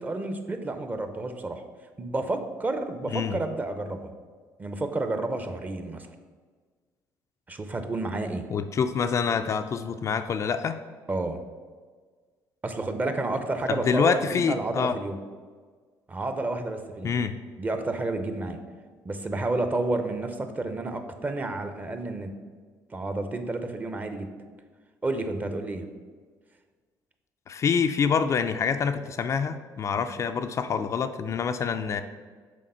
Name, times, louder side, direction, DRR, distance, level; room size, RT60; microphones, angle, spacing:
voice 1, 0.0-1.6 2.0-4.1 4.6-6.1 7.5-8.4 11.1-11.4 12.6-15.2 16.1-17.2 17.6-18.6 19.0-22.3 22.9-24.3 25.0-25.9 30.0-30.1, right 2 dB, 25° right, 7 dB, 0.6 m, -30 dB
voice 2, 8.5-10.8 13.7-15.0 17.0-17.3 27.5-32.0, left 6 dB, 40° left, 9 dB, 0.3 m, -26 dB
6.4 x 3.6 x 5.4 m, 1.5 s
cardioid pair, 100°, 8 cm